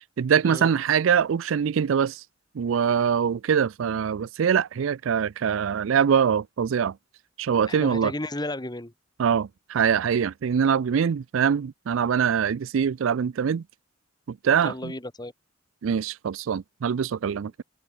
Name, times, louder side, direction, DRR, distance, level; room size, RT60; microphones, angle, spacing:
voice 1, 0.2-2.2 2.5-6.9 7.4-8.1 9.2-13.6 14.3-14.9 15.8-17.6, right 7 dB, 75° right, 0.4 m, -23 dB
voice 2, 7.7-8.9 14.6-15.3, left 1 dB, 20° left, 1.7 m, -33 dB
head